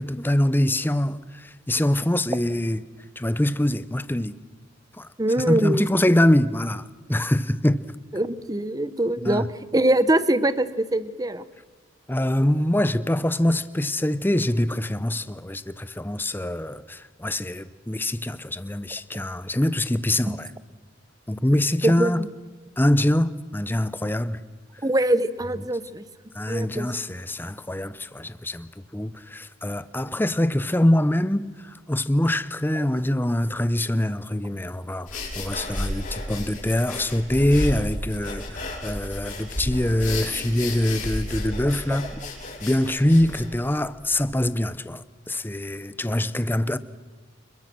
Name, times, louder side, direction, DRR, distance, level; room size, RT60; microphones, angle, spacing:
voice 1, 0.0-2.8 3.2-4.4 5.0-5.1 5.4-7.8 9.2-9.5 12.1-20.5 21.3-22.2 22.8-24.4 26.3-42.2 42.6-46.8, left 1 dB, 10° left, 0.7 m, -24 dB
voice 2, 5.2-5.9 8.1-9.5 9.7-11.4 20.3-20.4 21.8-22.3 24.8-26.0 26.5-26.9 32.8-32.9, right 1 dB, 20° right, 0.9 m, -23 dB
sound 1, 35.1-44.3, left 1 dB, 40° left, 6.9 m, -32 dB
28.5 x 21.5 x 6.1 m
head